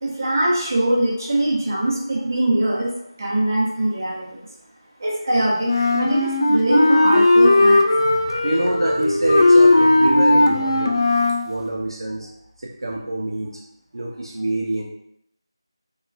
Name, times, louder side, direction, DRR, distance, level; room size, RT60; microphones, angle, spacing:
voice 1, 0.0-2.9 3.2-4.5 5.0-7.9, right 1 dB, 35° right, -5 dB, 0.7 m, -22 dB
Wind instrument woodwind instrument, 5.6-11.5, left 2 dB, 60° left, 0.4 m, -16 dB
voice 2, 7.9-11.0 11.4-12.3 12.6-13.6 13.9-14.8, right 1 dB, 70° right, -2 dB, 0.5 m, -25 dB
2.9 x 2.3 x 2.3 m, 0.75 s
figure-of-eight pair, 175°, 3 cm